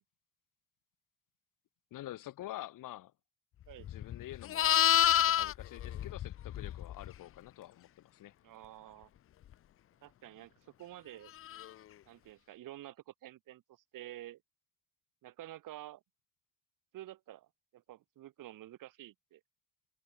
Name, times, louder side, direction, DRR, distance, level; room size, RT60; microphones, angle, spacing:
voice 1, 1.9-3.1 3.9-4.8 5.1-8.3, left 14 dB, 60° left, 2.2 m, -47 dB
Livestock farm animals working animals, 3.8-7.1 11.5-11.7, left 12 dB, 35° left, 0.6 m, -29 dB
voice 2, 8.4-9.1 10.0-11.3 12.1-14.4 15.2-16.0 16.9-17.5 17.7-19.4, right 14 dB, 60° right, 3.2 m, -50 dB
cardioid pair, 170°, 37 cm